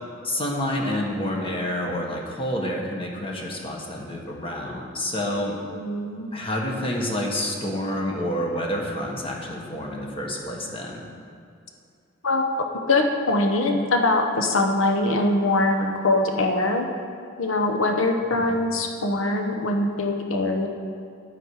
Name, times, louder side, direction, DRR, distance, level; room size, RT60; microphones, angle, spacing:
voice 1, 0.2-5.6 6.3-11.1 18.5-18.6, left 1 dB, 30° left, 0 dB, 1.5 m, -28 dB
voice 2, 5.5-6.3 12.2-16.9 17.4-20.7, left 2 dB, 70° left, 3 dB, 1.0 m, -23 dB
10.5 x 9.0 x 4.8 m, 2.4 s
head